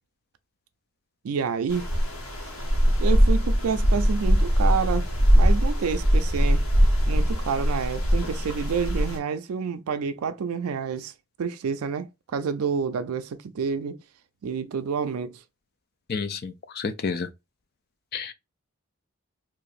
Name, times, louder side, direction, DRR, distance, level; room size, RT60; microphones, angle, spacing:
voice 1, 1.2-1.9 3.0-5.1 5.3-6.6 7.1-11.1 11.4-14.0 14.4-15.4, right 6 dB, 85° right, 0.4 m, -28 dB
sound 1, 1.7-9.2, equal, 70° left, 1.2 m, -21 dB
voice 2, 16.1-17.3 18.1-18.3, left 5 dB, 45° left, 0.4 m, -30 dB
2.9 x 2.5 x 4.0 m
head